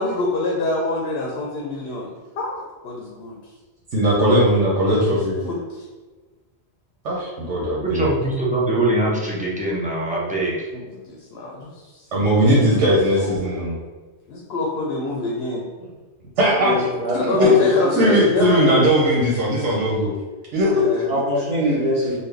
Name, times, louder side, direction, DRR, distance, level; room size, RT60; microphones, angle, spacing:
voice 1, 0.0-3.5 4.8-5.9 10.7-13.6 14.3-15.6 17.1-18.9 20.7-21.1, left 2 dB, 65° left, -1 dB, 0.8 m, -27 dB
voice 2, 3.9-5.4 7.0-8.2 12.1-13.8 16.4-16.8 17.2-17.6 18.0-20.1 20.5-21.1, equal, 90° right, -4 dB, 1.1 m, -18 dB
voice 3, 7.8-10.7, right 2 dB, 10° right, -6 dB, 0.4 m, -22 dB
voice 4, 16.6-17.7 18.0-18.1 21.1-22.2, equal, 40° right, -6 dB, 0.8 m, -23 dB
4.0 x 2.2 x 3.3 m, 1.3 s
omnidirectional pair, 1.2 m